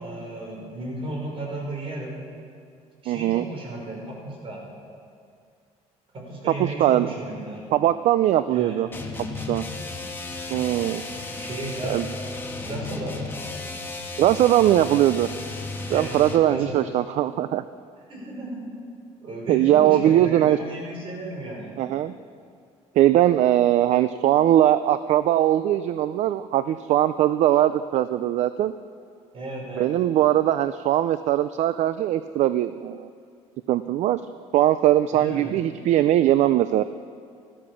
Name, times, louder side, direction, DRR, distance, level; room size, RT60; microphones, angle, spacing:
voice 1, 0.0-2.2 3.0-4.6 6.1-7.6 8.5-8.8 11.3-12.0 12.6-13.2 15.9-16.9 18.1-18.7 19.2-21.8 29.3-29.9 35.1-35.5, right 1 dB, 45° right, -1 dB, 5.7 m, -34 dB
voice 2, 3.1-3.5 6.6-7.1 7.7-8.9 9.5-9.6 10.5-11.0 11.8-12.1 14.2-15.3 15.9-17.6 19.5-20.6 21.8-22.1 23.0-28.7 29.8-33.1 33.7-34.2 34.5-36.8, right 12 dB, 70° right, 13 dB, 0.4 m, -20 dB
sound 1, 8.9-16.5, left 3 dB, 15° left, 1.9 m, -34 dB
15.0 x 13.5 x 7.1 m, 2.3 s
cardioid pair, 110°, 12 cm